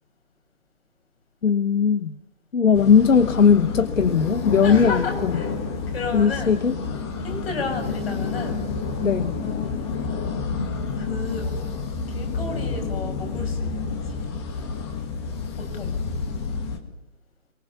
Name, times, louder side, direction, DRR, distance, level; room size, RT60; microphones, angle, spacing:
voice 1, 1.4-2.2 2.5-5.3 6.1-6.7 9.0-9.4, left 6 dB, 70° left, 14 dB, 1.2 m, -18 dB
sound 1, 2.7-16.8, left 4 dB, 20° left, 1.8 m, -29 dB
voice 2, 4.6-5.5 5.9-6.6 7.2-8.6 9.4-9.9 11.0-11.6 12.1-14.5 15.6-15.9, left 4 dB, 50° left, 3 dB, 7.5 m, -33 dB
23.5 x 23.0 x 7.1 m, 0.84 s
figure-of-eight pair, 155°, 39 cm